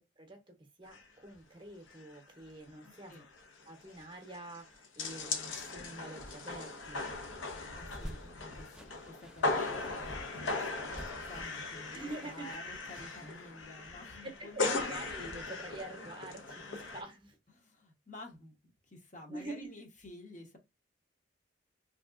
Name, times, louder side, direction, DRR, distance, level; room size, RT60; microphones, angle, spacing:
voice 1, 0.0-3.1 3.7-7.0 11.9-12.5 14.2-17.4 19.3-19.7, right 2 dB, 25° right, 0.7 m, -46 dB
sound 1, 0.9-1.1 1.3-1.4 1.9-2.2 2.5-2.6 2.8-17.0, left 3 dB, 80° left, 0.7 m, -38 dB
voice 2, 2.8-3.3 7.5-14.9 17.5-18.6 18.9-20.6, left 1 dB, 40° left, 0.8 m, -51 dB
sound 2, 7.9-13.3, equal, 5° right, 0.3 m, -51 dB
3.4 x 2.7 x 2.3 m
head